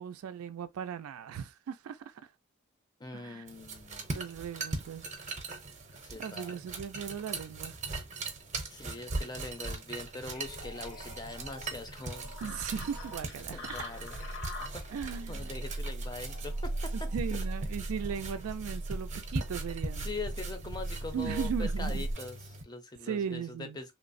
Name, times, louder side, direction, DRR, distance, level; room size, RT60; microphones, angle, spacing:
voice 1, 0.0-2.1 3.1-3.4 4.1-5.1 6.2-7.8 12.4-13.9 14.9-15.3 16.9-20.1 21.1-22.1 23.0-23.9, right 7 dB, 80° right, 0.3 m, -37 dB
voice 2, 3.0-4.1 6.0-6.6 8.7-12.4 13.5-14.2 14.7-17.4 19.9-23.9, left 3 dB, 20° left, 0.5 m, -42 dB
sound 1, 3.5-22.6, right 3 dB, 35° right, 0.6 m, -41 dB
sound 2, 10.3-18.6, left 3 dB, 55° left, 0.8 m, -48 dB
sound 3, 10.6-22.1, right 1 dB, 85° left, 0.5 m, -39 dB
3.0 x 2.0 x 2.5 m
head